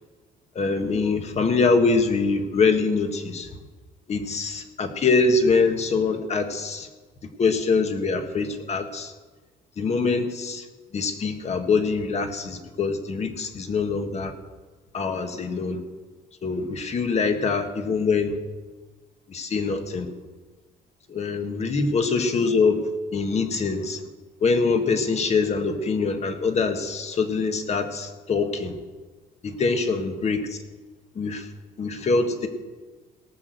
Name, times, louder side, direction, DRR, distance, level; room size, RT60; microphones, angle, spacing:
voice 1, 0.5-3.5 4.1-6.9 7.4-9.1 9.8-10.6 10.9-14.3 14.9-15.8 16.4-18.4 19.3-20.1 21.1-24.0 24.4-28.8 29.4-30.6 31.1-31.5 31.8-32.5, left 4 dB, 40° left, 7 dB, 1.6 m, -24 dB
18.0 x 6.5 x 7.9 m, 1.3 s
cardioid pair, 110°, 17 cm